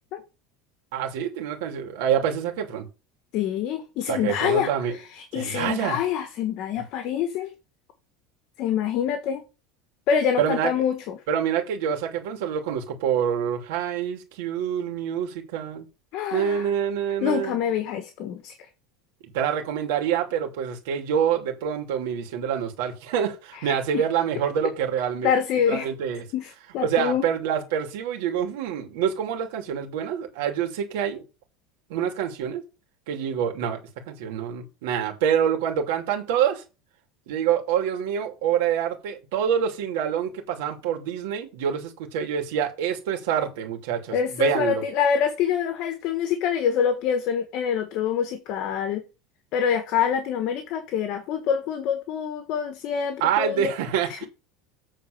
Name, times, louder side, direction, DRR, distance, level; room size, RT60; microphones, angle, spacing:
voice 1, 0.9-2.9 4.1-4.9 5.3-6.0 10.4-10.7 11.3-15.9 16.3-17.6 19.2-25.3 25.7-26.2 26.8-31.2 31.9-32.6 33.1-33.8 34.1-36.6 37.3-44.8 53.2-54.3, right 8 dB, 75° right, 2.9 m, -26 dB
voice 2, 3.3-7.5 8.6-9.4 10.1-11.2 16.1-16.7 17.2-18.7 23.6-24.0 25.2-25.9 26.3-27.2 44.1-49.0 49.5-53.7 54.1-54.3, left 8 dB, 45° left, 1.3 m, -26 dB
8.4 x 4.2 x 6.7 m
supercardioid pair, 160°, 0 cm